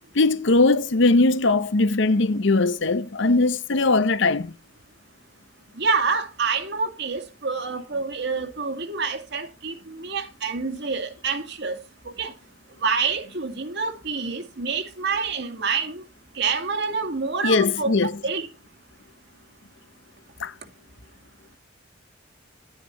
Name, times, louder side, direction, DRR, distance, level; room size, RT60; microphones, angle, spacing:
voice 1, 0.1-4.5 17.4-18.1 20.4-20.5, left 3 dB, 65° left, 0.8 m, -20 dB
voice 2, 5.8-11.8 12.1-12.3 12.8-16.0 16.4-18.5, right 5 dB, 60° right, 2.1 m, -27 dB
11.5 x 9.8 x 4.4 m
head